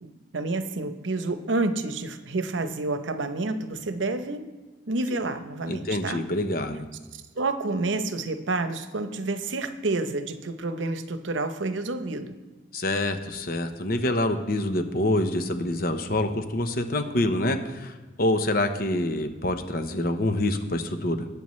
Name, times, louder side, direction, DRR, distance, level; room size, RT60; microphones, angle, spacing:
voice 1, 0.0-4.5 4.9-6.2 7.1-12.4, right 2 dB, 90° right, 9 dB, 0.8 m, -29 dB
voice 2, 5.7-6.8 12.7-21.3, left 1 dB, 50° left, 7 dB, 0.9 m, -26 dB
19.5 x 8.9 x 3.2 m, 1.3 s
head